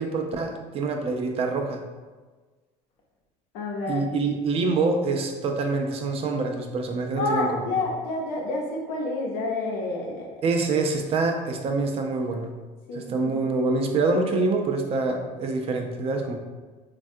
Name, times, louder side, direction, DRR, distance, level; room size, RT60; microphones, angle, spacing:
voice 1, 0.0-1.8 3.9-7.6 10.4-12.5 12.9-16.4, right 3 dB, 45° right, 4 dB, 0.4 m, -26 dB
voice 2, 3.5-4.0 7.2-10.4 12.9-13.3, left 2 dB, 80° left, -1 dB, 0.7 m, -29 dB
3.3 x 2.3 x 2.6 m, 1.3 s
supercardioid pair, 100°, 14 cm